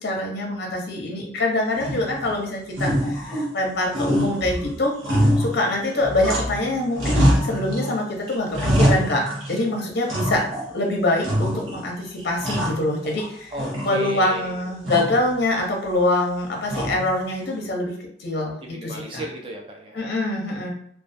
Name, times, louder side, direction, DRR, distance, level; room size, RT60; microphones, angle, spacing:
voice 1, 0.0-5.0 5.4-10.5 10.7-13.5 13.8-19.2 19.9-20.7, left 2 dB, 55° left, 0 dB, 0.6 m, -24 dB
sound 1, 1.8-2.4 2.7-3.7 3.9-6.7 7.0-8.0 8.3-9.7 10.1-10.8 11.2-11.9 12.2-13.3 13.6-14.3 14.8-15.3 16.7-17.2, equal, 85° right, 0.8 m, -24 dB
voice 2, 13.5-14.7 18.6-20.0, right 1 dB, 25° right, 1 dB, 0.4 m, -35 dB
2.3 x 2.3 x 2.5 m, 0.68 s
head